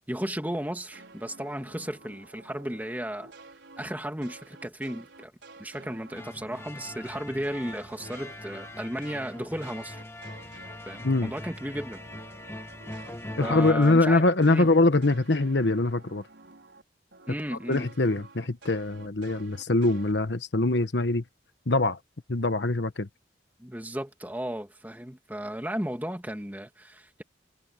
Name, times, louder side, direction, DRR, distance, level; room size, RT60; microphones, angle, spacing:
voice 1, 0.0-3.3 3.8-5.3 5.6-10.0 10.9-12.0 13.4-14.7 17.3-17.9 23.6-27.2, equal, 10° right, 2.3 m, -34 dB
sound 1, 0.9-7.2 7.5-16.8 17.1-20.1, right 3 dB, 80° right, 4.5 m, -51 dB
sound 2, 6.1-13.7, left 1 dB, 15° left, 1.6 m, -42 dB
voice 2, 13.4-16.2 17.7-21.2 21.7-22.0 22.3-23.1, left 2 dB, 70° left, 1.2 m, -23 dB
head